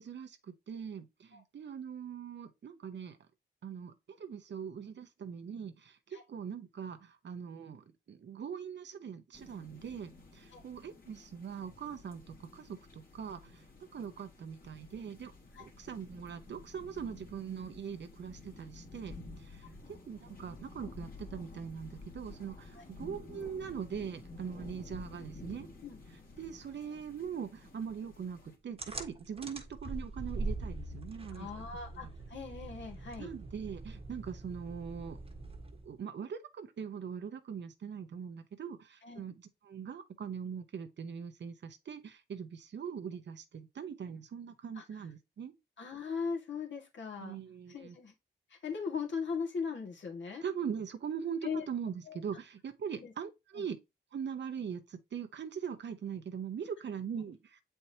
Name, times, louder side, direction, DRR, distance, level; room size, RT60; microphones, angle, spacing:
voice 1, 0.0-3.2 3.6-13.6 13.9-15.3 15.6-19.7 20.1-25.7 26.4-31.5 31.9-32.1 33.2-35.2 35.8-45.5 47.2-48.0 50.4-53.8 54.1-57.6, right 7 dB, 65° right, 0.9 m, -42 dB
sound 1, 9.3-28.6, left 3 dB, 50° left, 2.0 m, -52 dB
sound 2, 28.8-36.0, right 2 dB, 30° right, 1.3 m, -42 dB
voice 2, 31.3-33.3 39.0-39.2 44.8-44.9 45.8-47.4 47.7-48.1 48.5-50.4 51.4-51.6 52.1-52.2 53.0-53.1 53.6-53.7, left 5 dB, 70° left, 1.9 m, -39 dB
7.8 x 4.5 x 2.8 m
cardioid pair, 80°, 20 cm